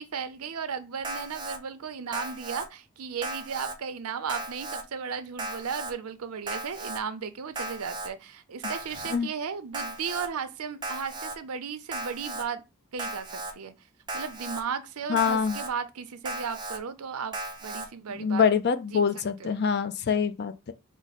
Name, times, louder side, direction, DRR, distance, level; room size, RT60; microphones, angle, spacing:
voice 1, 0.0-12.6 12.9-13.7 14.1-17.4 17.6-18.5 18.9-19.0 19.4-19.5, right 6 dB, 90° right, 0.6 m, -35 dB
Alarm, 1.0-1.6 2.1-2.7 3.2-3.8 4.3-4.8 5.4-5.9 6.5-7.0 7.6-8.1 8.6-9.2 9.7-10.3 10.8-11.4 11.9-12.5 13.0-13.5 14.1-14.6 15.2-15.7 16.3-16.8 17.3-17.9, right 2 dB, 20° right, 0.4 m, -36 dB
voice 2, 15.1-15.6 18.2-20.7, left 6 dB, 50° left, 0.4 m, -25 dB
4.7 x 2.0 x 4.1 m
head